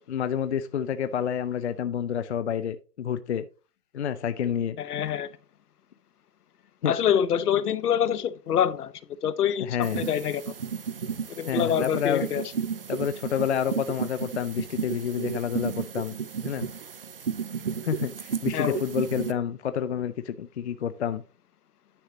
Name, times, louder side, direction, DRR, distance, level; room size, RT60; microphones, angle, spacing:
voice 1, 0.1-3.5 3.9-4.8 6.8-6.9 9.6-10.0 11.5-12.2 12.9-16.1 16.4-16.7 17.8-21.2, left 8 dB, 45° left, 0.6 m, -29 dB
voice 2, 4.8-5.3 6.9-8.9 9.2-10.5 11.4-12.4 18.5-18.8, left 9 dB, 70° left, 1.0 m, -26 dB
sound 1, 9.8-19.3, right 7 dB, 40° right, 0.4 m, -33 dB
10.0 x 6.5 x 2.9 m
hypercardioid pair, 160°, 48 cm